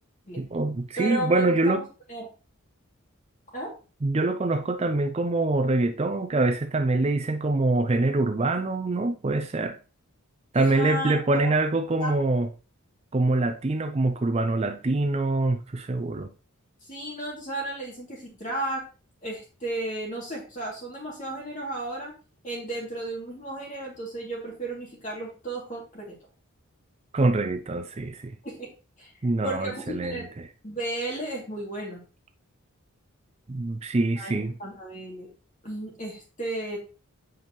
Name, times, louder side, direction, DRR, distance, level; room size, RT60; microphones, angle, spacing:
voice 1, 0.4-1.9 4.0-9.8 10.5-12.5 13.1-16.3 27.1-28.4 29.2-30.5 33.5-34.5, right 2 dB, 30° right, 0.4 m, -25 dB
voice 2, 1.0-1.8 2.1-2.3 3.5-3.7 10.5-11.4 12.0-12.1 16.8-18.8 19.2-22.1 22.4-26.2 28.4-28.7 29.0-29.1 29.4-30.3 30.6-32.0 34.2-35.3 35.6-36.8, right 1 dB, 35° left, 2.7 m, -34 dB
7.8 x 5.2 x 3.1 m
head